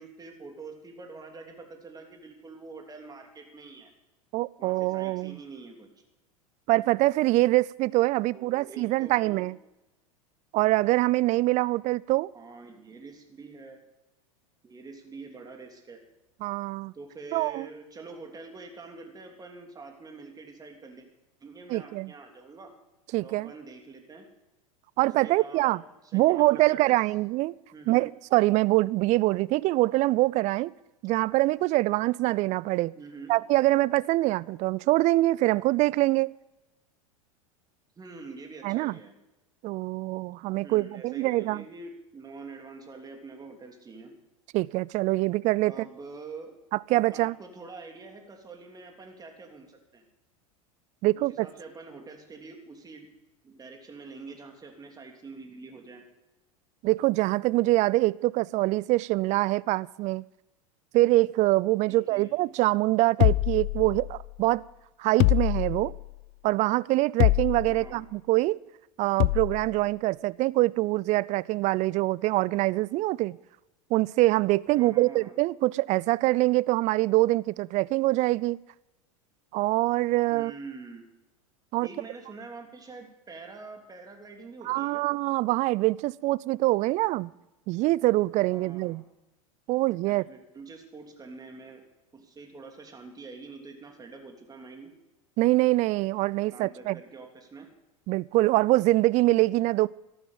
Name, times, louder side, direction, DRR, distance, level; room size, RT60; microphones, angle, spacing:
voice 1, 0.0-3.9 4.6-5.9 8.3-9.5 12.3-13.8 14.6-16.0 16.9-21.1 21.4-22.7 23.2-24.3 25.2-27.0 27.7-28.1 33.0-33.4 38.0-39.1 40.6-44.1 45.6-46.5 47.1-50.1 51.1-53.1 53.4-56.0 61.9-62.3 67.6-68.0 74.7-75.3 80.3-81.0 81.8-85.0 88.5-89.0 90.0-91.8 92.1-94.9 96.5-97.7, right 4 dB, 20° right, 3.2 m, -45 dB
voice 2, 4.3-5.4 6.7-9.5 10.5-12.3 16.4-16.9 17.3-17.7 21.7-22.1 23.1-23.5 25.0-25.8 26.1-27.5 27.9-30.7 31.0-32.9 33.3-36.3 38.6-38.9 39.6-41.6 44.5-45.7 46.9-47.3 51.0-51.5 56.8-60.2 60.9-64.6 65.0-65.9 66.4-68.6 69.0-73.4 73.9-78.6 79.5-80.5 81.7-81.9 84.7-87.3 87.7-89.0 89.7-90.2 95.4-97.0 98.1-99.9, right 19 dB, 40° right, 0.5 m, -24 dB
sound 1, 63.2-64.3 65.2-66.1 67.2-67.9 69.2-69.7, left 21 dB, 50° left, 0.5 m, -24 dB
14.0 x 12.0 x 7.4 m
hypercardioid pair, 90°, 18 cm